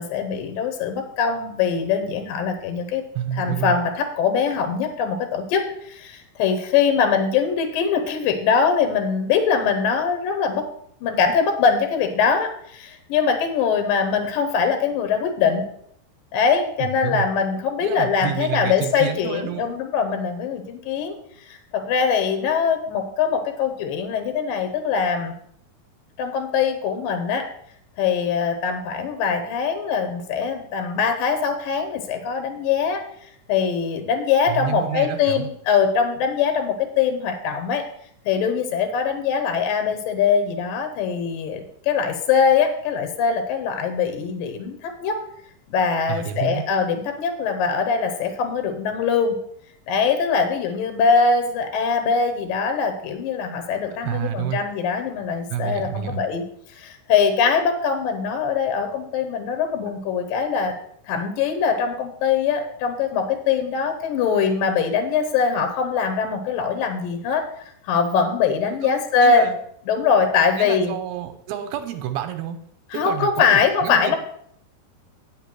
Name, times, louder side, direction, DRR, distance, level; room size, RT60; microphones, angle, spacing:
voice 1, 0.0-3.0 3.3-10.7 11.0-15.7 16.3-21.2 21.5-25.3 26.2-27.5 28.0-37.8 38.3-45.2 45.7-49.4 49.9-56.4 56.7-60.7 61.1-67.5 67.8-69.5 69.9-70.9 72.9-74.2, left 6 dB, 70° left, 7 dB, 2.5 m, -22 dB
voice 2, 3.2-3.8 16.8-17.3 17.8-19.7 34.5-35.5 46.1-46.6 54.0-54.6 55.5-56.2 68.7-68.9 69.2-69.6 70.6-72.6 72.9-74.2, right 10 dB, 80° right, 7 dB, 2.6 m, -29 dB
9.2 x 5.6 x 6.1 m, 0.68 s
omnidirectional pair, 4.5 m